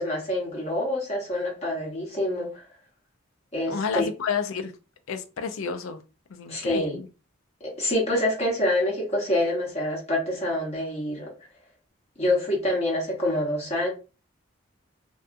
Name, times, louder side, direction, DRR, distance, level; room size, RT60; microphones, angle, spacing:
voice 1, 0.0-2.6 3.5-4.1 6.5-7.0 7.6-11.3 12.2-13.9, left 1 dB, 30° left, 0.7 m, -26 dB
voice 2, 3.7-4.7 5.1-6.0 6.3-7.1, left 5 dB, 85° left, 0.4 m, -30 dB
2.6 x 2.3 x 2.4 m
head